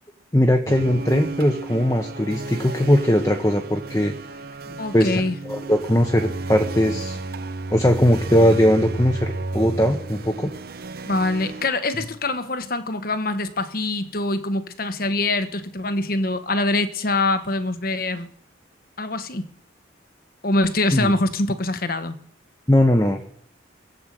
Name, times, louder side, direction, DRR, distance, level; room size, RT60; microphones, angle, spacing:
voice 1, 0.3-4.1 4.9-7.2 7.7-10.5 20.9-21.1 22.7-23.3, equal, 15° left, 1.0 m, -19 dB
sound 1, 0.7-11.7, right 2 dB, 50° right, 0.7 m, -33 dB
voice 2, 4.8-5.4 11.0-18.3 19.0-19.5 20.4-22.2, left 2 dB, 50° left, 1.2 m, -24 dB
22.0 x 8.3 x 7.6 m
head